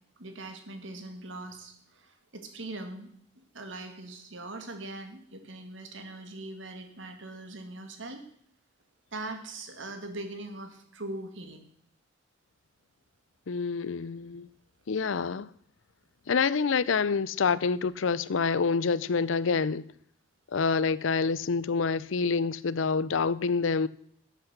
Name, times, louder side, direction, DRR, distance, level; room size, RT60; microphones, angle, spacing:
voice 1, 0.2-8.2 9.1-11.6, right 2 dB, 75° right, 2.0 m, -41 dB
voice 2, 13.5-14.5 14.9-15.5 16.3-19.8 20.5-23.9, left 5 dB, 90° left, 0.6 m, -27 dB
11.5 x 8.4 x 6.7 m
head